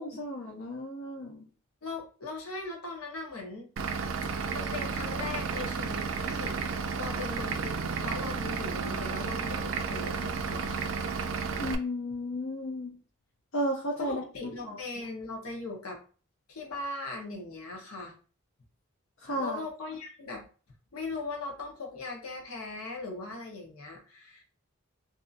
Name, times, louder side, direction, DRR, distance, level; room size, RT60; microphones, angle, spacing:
voice 1, 0.0-1.5 11.6-13.0 13.5-14.2 14.7-14.8 19.2-19.6, equal, 60° left, -1 dB, 0.5 m, -33 dB
voice 2, 1.8-3.7 4.5-6.6 7.0-10.9 14.0-16.0 16.5-18.1 19.4-20.5 20.9-24.4, left 3 dB, 90° left, 1 dB, 0.9 m, -39 dB
Vehicle / Engine, 3.8-11.8, right 5 dB, 65° right, 0.3 m, -32 dB
2.6 x 2.6 x 2.4 m, 0.37 s
head